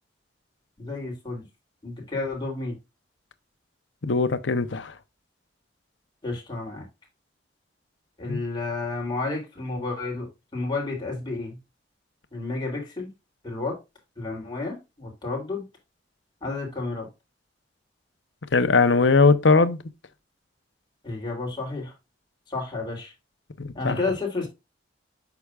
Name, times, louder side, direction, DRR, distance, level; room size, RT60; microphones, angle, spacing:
voice 1, 0.8-1.4 1.8-2.8 6.2-6.8 8.2-11.6 12.3-13.1 13.4-13.8 14.2-15.6 16.4-17.1 21.0-21.9 22.5-23.1 23.7-24.5, left 3 dB, 25° left, 3.1 m, -31 dB
voice 2, 4.0-4.9 8.3-8.4 18.5-19.8 23.6-24.0, left 4 dB, 85° left, 0.8 m, -20 dB
8.2 x 5.9 x 2.4 m
head